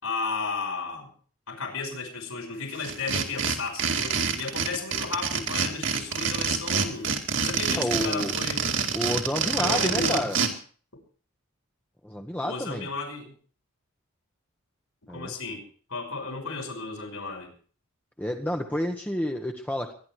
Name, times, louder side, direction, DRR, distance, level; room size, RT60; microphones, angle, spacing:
voice 1, 0.0-1.1 1.5-8.7 9.6-10.3 12.4-13.3 15.1-17.5, left 4 dB, 80° left, 2 dB, 5.8 m, -34 dB
sound 1, 2.8-10.5, right 6 dB, 55° right, 2.3 m, -27 dB
voice 2, 7.7-8.3 8.9-10.4 12.0-12.9 15.1-15.3 18.2-19.9, left 1 dB, 10° left, 2 dB, 1.2 m, -29 dB
24.0 x 11.0 x 4.7 m, 0.43 s
head